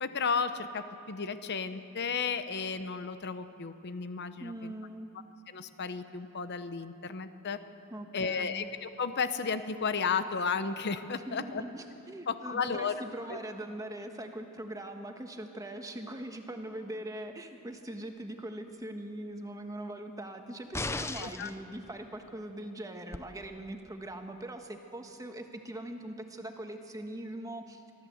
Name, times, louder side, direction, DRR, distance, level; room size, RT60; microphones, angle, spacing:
voice 1, 0.0-4.7 5.5-7.6 8.1-11.6 12.3-12.9 13.3-13.4 21.2-21.5, left 5 dB, 55° left, 10 dB, 0.8 m, -33 dB
voice 2, 4.4-5.1 7.9-8.7 11.3-27.8, right 1 dB, 15° right, 5 dB, 1.4 m, -41 dB
sound 1, 20.7-21.6 23.1-23.2, left 2 dB, 10° left, 0.6 m, -35 dB
24.0 x 14.5 x 8.0 m, 2.6 s
head